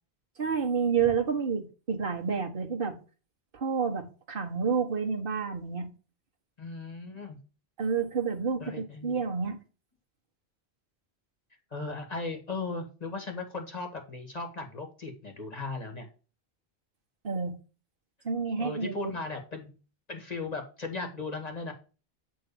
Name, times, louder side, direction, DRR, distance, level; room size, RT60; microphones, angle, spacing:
voice 1, 0.4-2.9 3.5-5.9 7.8-9.6 17.2-17.5 18.2-19.1, right 6 dB, 60° right, 1.6 m, -29 dB
voice 2, 6.6-7.4 8.6-9.2 11.7-16.1 18.6-19.8 20.1-21.7, left 3 dB, 40° left, 2.0 m, -37 dB
8.5 x 3.9 x 6.8 m
omnidirectional pair, 1.1 m